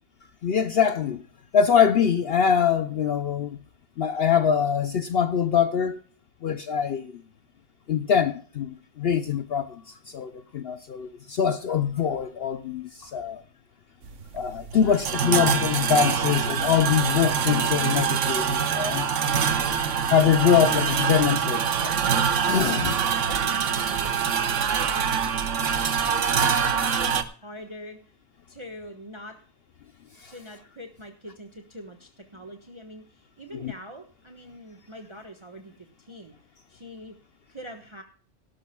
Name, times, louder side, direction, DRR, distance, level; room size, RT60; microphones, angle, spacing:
voice 1, 0.4-1.2 1.5-3.6 4.0-6.0 6.4-7.1 7.9-9.8 10.1-13.4 14.3-19.1 20.1-22.0 22.4-23.0 33.5-33.7, left 8 dB, 55° left, 0.8 m, -23 dB
sound 1, 14.0-27.2, right 7 dB, 75° right, 1.3 m, -25 dB
voice 2, 14.7-15.1 23.0-24.4 24.7-25.0 26.0-28.0 28.5-29.4 30.3-35.7 36.0-36.4 36.7-37.1 37.5-38.0, equal, 25° right, 1.3 m, -43 dB
17.5 x 12.5 x 2.3 m
omnidirectional pair, 1.3 m